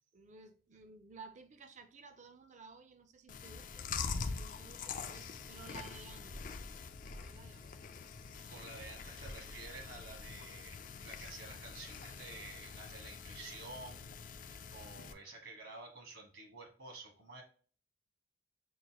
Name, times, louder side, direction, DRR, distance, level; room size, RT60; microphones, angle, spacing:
voice 1, 0.1-6.6 7.2-7.8, right 4 dB, 35° right, 0.5 m, -55 dB
Chewing mastication, 3.3-15.1, left 5 dB, 40° left, 0.3 m, -44 dB
voice 2, 8.5-17.4, right 3 dB, 70° right, 1.3 m, -51 dB
6.2 x 2.2 x 2.9 m
head